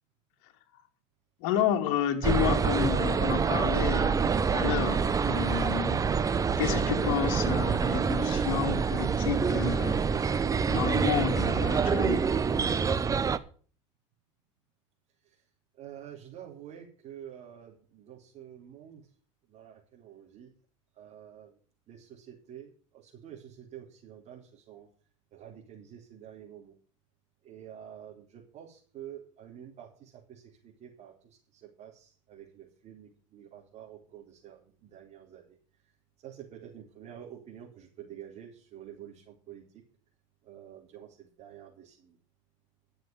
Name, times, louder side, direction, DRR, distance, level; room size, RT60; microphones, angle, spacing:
voice 1, 1.4-12.3, left 10 dB, 65° left, 2.6 m, -31 dB
sound 1, 2.2-13.4, right 6 dB, 20° right, 1.0 m, -26 dB
voice 2, 15.8-19.0 19.5-20.5 21.0-21.5 21.9-24.9 25.3-26.7 27.4-35.6 36.2-39.6 40.4-42.2, right 10 dB, 45° right, 4.5 m, -48 dB
12.5 x 7.7 x 7.5 m
supercardioid pair, 105°, 16 cm